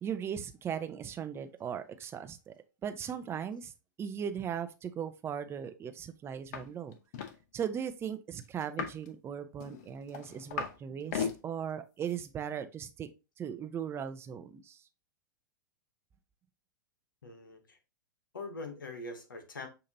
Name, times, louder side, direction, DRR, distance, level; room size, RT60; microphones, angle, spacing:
voice 1, 0.0-2.5 2.8-3.7 4.0-6.9 7.5-13.1 13.4-14.8, right 8 dB, 25° right, 0.6 m, -38 dB
sound 1, 6.5-6.7 6.9-7.4 8.6-9.1 9.6-10.8 11.0-11.4 12.1-12.2, left 7 dB, 55° left, 0.8 m, -36 dB
voice 2, 17.2-17.8 18.3-19.7, left 2 dB, 85° left, 1.2 m, -43 dB
6.7 x 2.8 x 2.7 m
hypercardioid pair, 105°, 11 cm